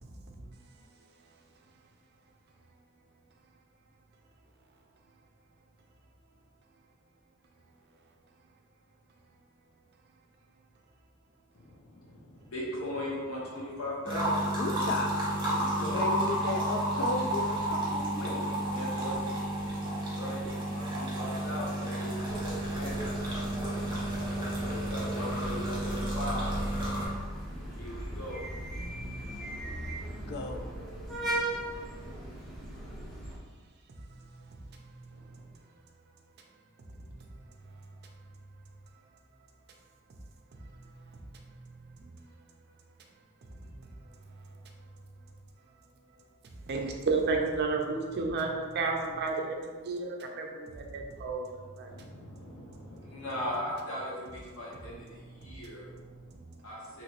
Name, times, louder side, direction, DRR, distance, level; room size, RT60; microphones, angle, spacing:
voice 1, 11.5-14.6 15.4-16.1 17.0-17.3 18.0-30.2 35.1-35.4 51.9-57.0, left 1 dB, 80° left, -5 dB, 1.0 m, -40 dB
sound 1, 14.1-27.1, right 1 dB, 25° right, 1.1 m, -32 dB
voice 2, 14.6-15.4 15.8-18.5 30.3-30.7, left 3 dB, 50° left, 4 dB, 0.4 m, -35 dB
sound 2, 22.2-33.4, right 1 dB, ahead, 0.6 m, -38 dB
voice 3, 46.6-51.5 51.8-51.9 56.3-56.4, right 3 dB, 50° right, 2 dB, 0.4 m, -31 dB
3.0 x 2.9 x 2.9 m, 1.4 s
head